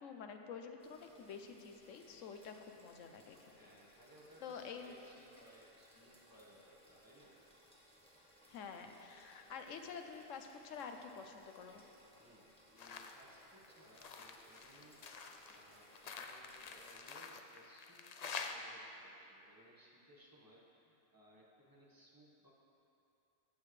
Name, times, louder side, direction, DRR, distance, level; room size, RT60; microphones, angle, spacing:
voice 1, 0.0-3.5 4.4-4.9 8.5-11.8, left 6 dB, 85° left, 5 dB, 1.1 m, -49 dB
sound 1, 0.8-16.9, equal, 5° left, 1.5 m, -65 dB
voice 2, 2.0-2.3 3.3-7.4 12.2-22.5, equal, 15° right, -5 dB, 1.4 m, -64 dB
sound 2, 12.8-13.2 13.5-18.5, left 5 dB, 50° left, 0.5 m, -48 dB
15.5 x 8.6 x 3.2 m, 2.9 s
omnidirectional pair, 1.3 m